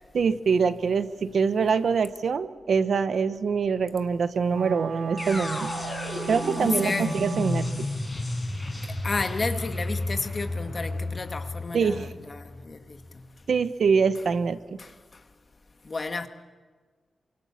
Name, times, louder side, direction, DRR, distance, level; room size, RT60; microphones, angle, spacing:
voice 1, 0.1-5.7 6.3-7.9 11.7-12.1 13.5-14.8, right 5 dB, 55° right, 1.0 m, -24 dB
Wind instrument woodwind instrument, 4.5-7.9, right 5 dB, 90° right, 6.3 m, -35 dB
sound 1, 5.2-13.1, left 2 dB, 10° left, 5.8 m, -32 dB
voice 2, 6.6-7.2 9.0-13.3 14.8-14.9 15.8-16.3, left 3 dB, 30° left, 1.6 m, -32 dB
28.5 x 24.5 x 7.1 m
wide cardioid pair, 180°, 0 cm